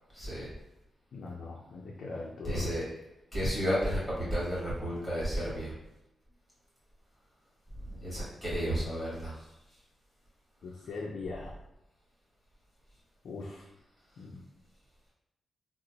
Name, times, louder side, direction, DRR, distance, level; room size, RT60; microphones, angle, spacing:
voice 1, 0.1-0.5 2.4-2.9 3.3-5.7 7.8-9.3, equal, 5° left, -7 dB, 1.4 m, -32 dB
voice 2, 1.1-2.8 10.6-11.5 13.2-13.7 14.2-14.4, left 3 dB, 65° left, -3 dB, 0.4 m, -41 dB
2.9 x 2.0 x 3.9 m, 0.88 s
wide cardioid pair, 155°, 0 cm